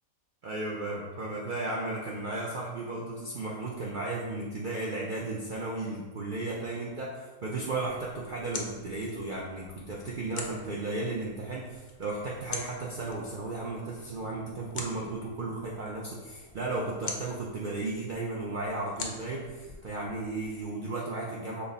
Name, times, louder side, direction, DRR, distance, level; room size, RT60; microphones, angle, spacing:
voice 1, 0.4-21.6, right 2 dB, 80° right, -3 dB, 0.4 m, -34 dB
sound 1, 7.9-20.6, left 4 dB, 65° left, 0.5 m, -45 dB
5.6 x 2.0 x 4.0 m, 1.3 s
omnidirectional pair, 1.5 m